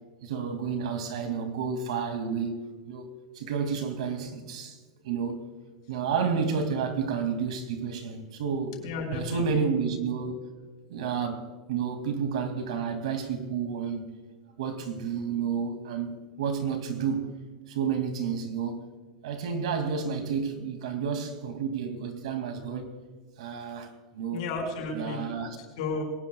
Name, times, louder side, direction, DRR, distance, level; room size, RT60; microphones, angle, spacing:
voice 1, 0.2-3.1 3.3-4.8 5.0-5.4 5.9-8.8 9.1-10.4 10.9-14.1 14.6-17.3 17.7-18.9 19.2-22.9 23.4-24.5 24.9-25.6, right 6 dB, 80° right, 2.5 m, -30 dB
voice 2, 8.8-9.4 24.3-26.0, left 4 dB, 65° left, 5.4 m, -33 dB
22.5 x 19.0 x 2.4 m
supercardioid pair, 165°, 3 cm